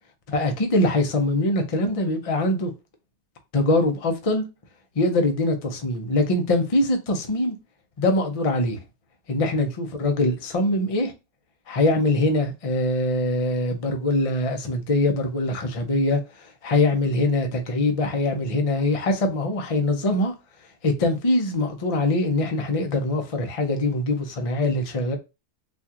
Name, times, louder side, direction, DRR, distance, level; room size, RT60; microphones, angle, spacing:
voice 1, 0.3-2.7 3.5-4.5 4.9-7.5 8.0-8.8 9.3-11.1 11.7-20.3 20.8-25.2, left 2 dB, 35° left, 0.6 m, -23 dB
4.3 x 2.4 x 2.8 m
omnidirectional pair, 1.6 m